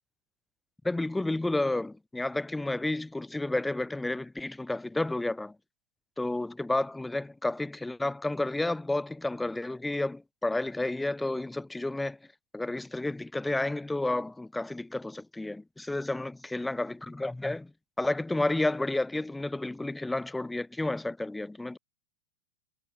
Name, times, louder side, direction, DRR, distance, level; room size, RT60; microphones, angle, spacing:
voice 1, 0.8-5.6 6.2-12.2 12.5-17.7 18.0-21.8, left 2 dB, 5° left, 6.8 m, -31 dB
figure-of-eight pair, 90°, 0 cm